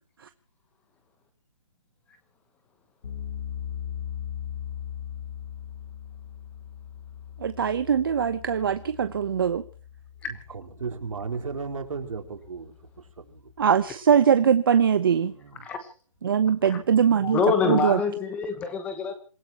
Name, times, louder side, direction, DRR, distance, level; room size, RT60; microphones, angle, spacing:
sound 1, 3.0-13.9, left 9 dB, 50° left, 4.6 m, -40 dB
voice 1, 7.4-9.6 13.6-15.3 16.2-17.4 17.6-18.0, right 7 dB, 40° right, 11 dB, 1.0 m, -21 dB
voice 2, 10.2-13.8 15.3-15.7 16.6-16.7, right 5 dB, 70° right, 4 dB, 4.4 m, -36 dB
voice 3, 17.2-19.1, left 5 dB, 5° left, 9 dB, 1.2 m, -26 dB
27.0 x 17.0 x 3.0 m, 0.40 s
hypercardioid pair, 170°, 18 cm